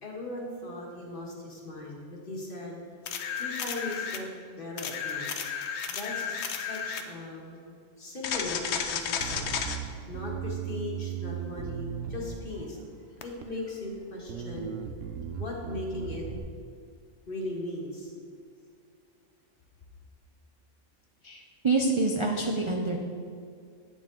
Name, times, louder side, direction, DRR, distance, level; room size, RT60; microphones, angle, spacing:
voice 1, 0.0-2.8 3.4-4.3 4.6-5.3 5.9-7.6 8.0-12.8 13.2-14.7 15.3-16.2 17.3-18.1, left 2 dB, 45° left, -2 dB, 1.5 m, -38 dB
sound 1, 3.1-4.3 4.8-7.1 8.2-9.8 13.2-13.3, left 7 dB, 65° left, 0.9 m, -33 dB
Bass guitar, 9.2-12.8 13.4-13.9 14.3-16.4, right 8 dB, 80° right, 1.0 m, -37 dB
voice 2, 21.2-23.0, right 3 dB, 45° right, 1 dB, 0.4 m, -27 dB
9.0 x 6.7 x 3.7 m, 2.2 s
omnidirectional pair, 1.3 m